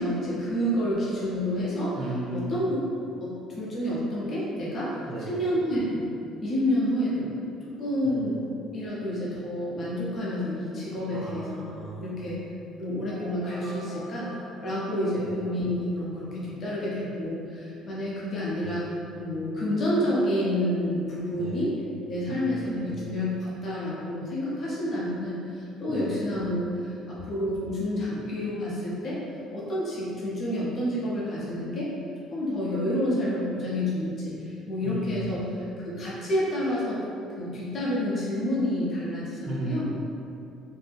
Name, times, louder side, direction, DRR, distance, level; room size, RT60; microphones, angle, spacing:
voice 1, 0.0-2.0 2.3-2.8 3.2-5.0 5.3-6.1 6.4-7.3 7.6-8.4 8.7-11.6 12.0-12.4 12.8-18.9 19.2-21.8 22.1-29.2 29.5-31.9 32.3-37.0 37.4-39.9, equal, 35° left, -7 dB, 0.7 m, -29 dB
voice 2, 1.9-2.6 5.1-5.5 8.0-8.3 11.1-12.4 15.2-15.4 18.6-18.8 21.4-21.6 22.3-23.0 25.9-26.1 34.8-35.1 39.4-39.9, right 2 dB, 40° right, -3 dB, 0.3 m, -36 dB
sound 1, 13.0-17.0, equal, 65° right, 1.2 m, -44 dB
2.6 x 2.0 x 3.4 m, 2.6 s
cardioid pair, 145°, 0 cm